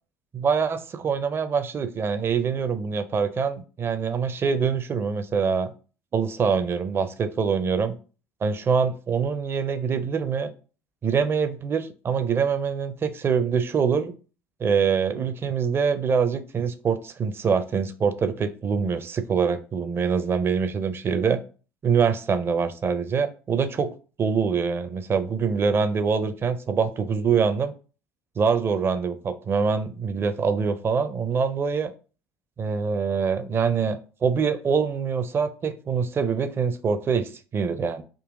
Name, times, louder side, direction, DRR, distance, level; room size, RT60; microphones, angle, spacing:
voice 1, 0.3-5.7 6.1-8.0 8.4-10.5 11.0-14.1 14.6-21.4 21.8-23.9 24.2-27.7 28.4-31.9 32.6-38.0, right 6 dB, 30° right, 10 dB, 0.5 m, -24 dB
3.9 x 2.7 x 3.7 m, 0.36 s
figure-of-eight pair, 60°, 8 cm